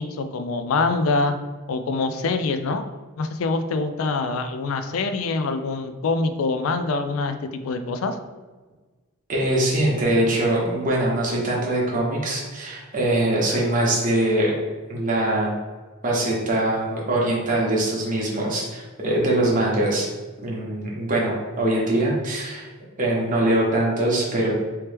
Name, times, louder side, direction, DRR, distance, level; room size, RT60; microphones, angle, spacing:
voice 1, 0.0-1.4 1.7-2.8 3.2-8.2, left 3 dB, 75° left, 8 dB, 0.4 m, -25 dB
voice 2, 9.3-14.6 14.9-15.5 16.0-20.1 20.4-22.7 23.0-24.5, right 1 dB, 40° right, -4 dB, 1.0 m, -22 dB
3.2 x 2.9 x 3.3 m, 1.3 s
head